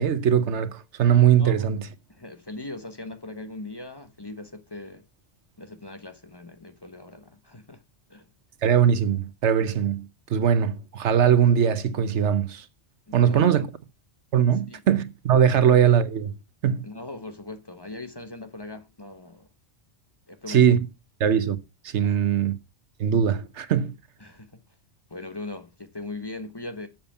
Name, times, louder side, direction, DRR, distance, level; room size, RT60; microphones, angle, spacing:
voice 1, 0.0-1.9 8.6-12.6 13.1-13.7 14.3-16.3 16.6-16.8 20.5-20.8 21.2-21.6 21.8-22.6 23.0-23.9, right 8 dB, 85° right, 1.2 m, -21 dB
voice 2, 1.4-1.7 2.1-5.0 5.6-7.8 8.1-8.3 13.1-13.7 14.7-14.8 15.5-15.6 16.8-19.5 20.3-20.7 22.0-22.4 24.2-24.6 25.1-26.9, left 2 dB, 20° left, 1.0 m, -40 dB
7.4 x 7.0 x 5.6 m
omnidirectional pair, 1.2 m